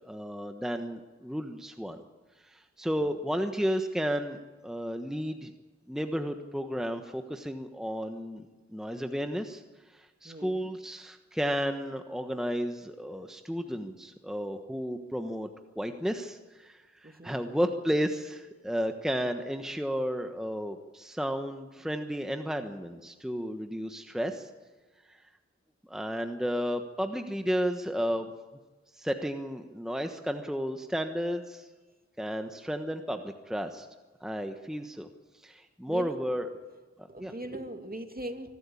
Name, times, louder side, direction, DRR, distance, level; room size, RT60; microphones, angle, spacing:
voice 1, 0.0-2.0 2.4-5.5 5.9-8.4 8.7-15.5 15.8-24.5 25.1-25.2 25.9-28.3 28.9-31.7 32.2-33.9 34.2-35.1 35.3-36.5 37.0-37.3, equal, ahead, 6 dB, 1.2 m, -33 dB
voice 2, 10.2-10.7 17.0-17.4 35.9-36.3 37.1-38.5, right 1 dB, 30° right, 5 dB, 2.4 m, -40 dB
25.5 x 12.5 x 8.6 m, 1.3 s
wide cardioid pair, 55°, 29 cm